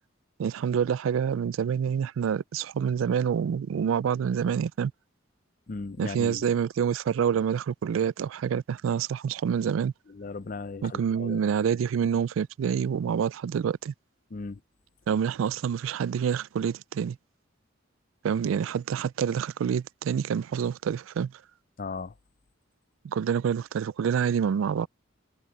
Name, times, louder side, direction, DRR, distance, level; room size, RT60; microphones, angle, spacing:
voice 1, 0.4-4.9 6.0-9.9 10.8-13.9 15.1-17.2 18.2-21.3 23.0-24.9, right 7 dB, 80° right, 0.3 m, -27 dB
voice 2, 5.7-6.5 10.1-11.4 14.3-14.6 21.8-22.1, left 4 dB, 40° left, 0.5 m, -37 dB
head